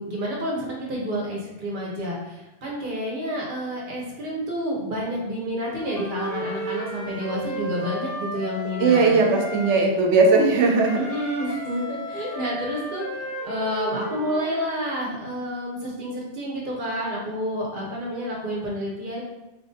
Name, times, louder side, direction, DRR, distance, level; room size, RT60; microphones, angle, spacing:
voice 1, 0.0-9.1 11.0-19.2, equal, 50° right, -3 dB, 0.9 m, -29 dB
Wind instrument woodwind instrument, 5.6-9.8 10.8-14.7, equal, 85° left, 1.4 m, -34 dB
voice 2, 8.8-11.0, right 3 dB, 85° right, 1 dB, 0.9 m, -18 dB
3.0 x 2.5 x 3.7 m, 1.0 s
omnidirectional pair, 1.2 m